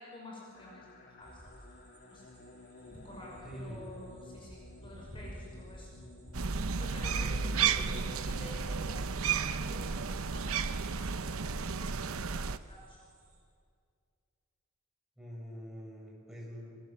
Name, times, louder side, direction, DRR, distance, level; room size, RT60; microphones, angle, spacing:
voice 1, 0.0-1.6 2.1-2.3 2.9-5.9 6.8-10.8 11.2-13.2, left 1 dB, 25° left, -2 dB, 5.8 m, -51 dB
sound 1, 0.5-8.9, left 2 dB, 50° left, 2.6 m, -54 dB
sound 2, 1.2-13.4, equal, 35° right, 6.7 m, -55 dB
voice 2, 3.4-4.0 7.2-8.1 15.2-16.8, equal, ahead, -3 dB, 7.6 m, -45 dB
sound 3, 6.3-12.6, right 5 dB, 75° right, 0.9 m, -32 dB
27.0 x 26.0 x 7.8 m, 2.2 s
head